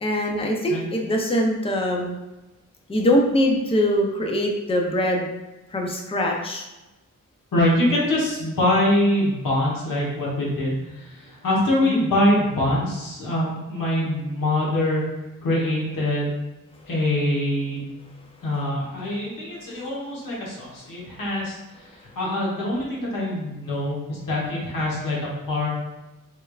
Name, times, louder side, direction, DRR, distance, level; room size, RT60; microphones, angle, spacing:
voice 1, 0.0-2.2 2.9-5.3 5.7-6.7 11.8-12.0, equal, 15° left, 1 dB, 0.4 m, -23 dB
voice 2, 7.5-15.0 15.4-16.4 16.9-17.9 18.4-25.7, left 1 dB, 75° left, -5 dB, 1.1 m, -24 dB
3.4 x 3.2 x 2.3 m, 1.0 s
wide cardioid pair, 130°, 33 cm